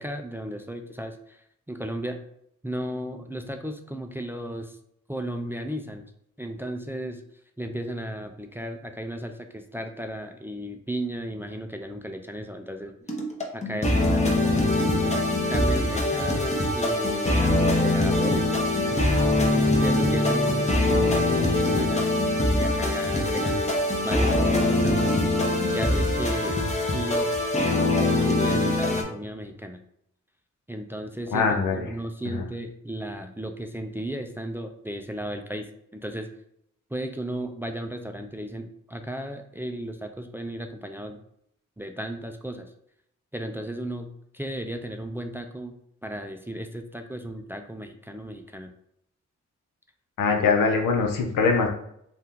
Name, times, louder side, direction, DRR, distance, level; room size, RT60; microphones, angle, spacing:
voice 1, 0.0-1.4 1.7-2.2 2.6-4.8 5.1-6.1 6.4-7.2 7.6-12.9 13.5-22.0 22.5-23.7 24.0-25.2 25.7-26.6 26.9-29.8 30.7-36.3 36.9-41.2 41.8-42.7 43.3-48.7, right 1 dB, 5° right, 5 dB, 0.3 m, -35 dB
sound 1, 13.1-29.0, left 2 dB, 20° left, 0.8 m, -23 dB
voice 2, 31.3-31.9 32.2-32.4 50.2-51.7, left 4 dB, 85° left, 2 dB, 0.7 m, -22 dB
2.7 x 2.4 x 3.6 m, 0.72 s
cardioid pair, 60°, 32 cm